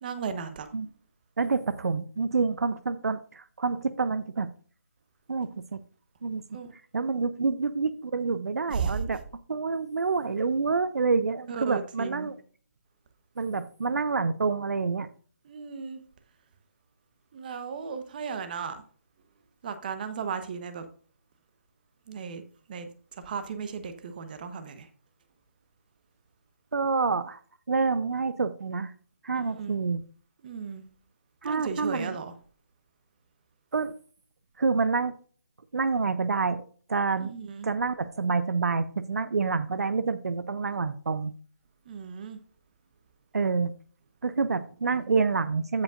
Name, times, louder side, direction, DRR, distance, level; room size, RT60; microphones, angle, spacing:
voice 1, 0.0-0.7 6.5-6.7 8.7-9.0 11.5-12.3 15.4-16.0 17.3-18.8 19.6-20.8 22.1-22.4 22.7-24.9 29.6-29.8 30.4-30.8 31.4-32.3 37.2-37.7 41.8-42.4, right 6 dB, 30° right, 1.0 m, -35 dB
voice 2, 1.4-4.5 5.3-5.8 6.2-6.4 6.9-9.2 9.5-12.3 13.4-15.1 26.7-27.4 27.7-28.9 29.2-30.0 31.4-32.2 33.7-33.9 34.6-35.1 35.7-36.6 36.9-37.3 37.6-41.3 43.3-43.7 44.2-45.8, right 4 dB, 70° right, 0.6 m, -27 dB
15.5 x 5.2 x 2.5 m
figure-of-eight pair, 160°, 9 cm